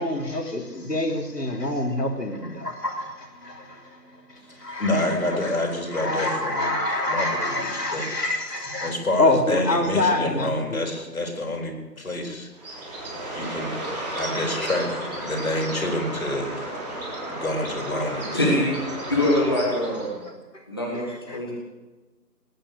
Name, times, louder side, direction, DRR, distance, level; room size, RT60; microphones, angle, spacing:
voice 1, 0.0-3.8 4.3-5.5 5.9-10.8 20.9-21.4, left 2 dB, 75° left, 2 dB, 3.4 m, -26 dB
voice 2, 4.5-6.7 7.0-8.1 8.8-12.8 13.3-13.8 14.2-14.9 15.2-16.7 17.3-18.3, left 1 dB, 55° left, 1 dB, 4.0 m, -28 dB
Bird, 12.5-20.3, right 1 dB, 25° right, 3.8 m, -33 dB
voice 3, 18.3-18.7 19.1-20.2 20.7-21.5, left 1 dB, 15° left, -4 dB, 1.8 m, -23 dB
20.0 x 10.5 x 6.7 m, 1.2 s
figure-of-eight pair, 170°, 50 cm